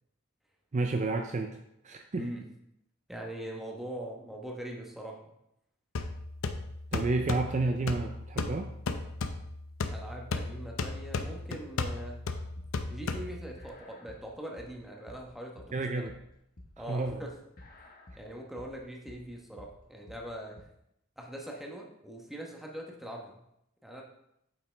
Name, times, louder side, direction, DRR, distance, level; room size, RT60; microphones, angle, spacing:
voice 1, 0.7-1.6 1.8-2.3 6.9-8.7 15.7-16.2 16.9-17.2, right 3 dB, 35° right, 4 dB, 0.5 m, -30 dB
voice 2, 2.1-2.5 3.1-5.2 9.9-12.2 12.9-16.1 16.8-17.4 18.2-20.6 21.2-23.4 23.8-24.0, right 1 dB, ahead, -1 dB, 1.1 m, -42 dB
sound 1, 6.0-13.7, left 3 dB, 75° left, 0.6 m, -35 dB
sound 2, 12.6-20.6, left 1 dB, 45° left, 1.2 m, -52 dB
8.5 x 5.7 x 3.4 m, 0.79 s
head